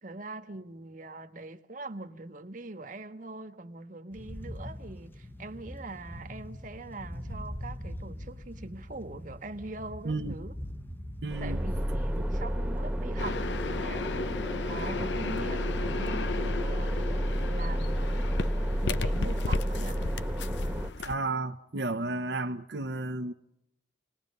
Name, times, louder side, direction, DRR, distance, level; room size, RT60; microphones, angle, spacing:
voice 1, 0.0-10.5 11.4-20.1, right 2 dB, 45° right, 1.4 m, -42 dB
sound 1, 4.1-16.5, equal, 10° left, 1.0 m, -43 dB
voice 2, 10.0-10.3 11.2-11.6 21.0-23.3, right 2 dB, 70° right, 0.9 m, -32 dB
sound 2, 11.3-20.9, equal, 5° right, 1.4 m, -31 dB
sound 3, 13.2-21.1, left 4 dB, 75° left, 0.7 m, -35 dB
28.5 x 20.0 x 5.4 m
head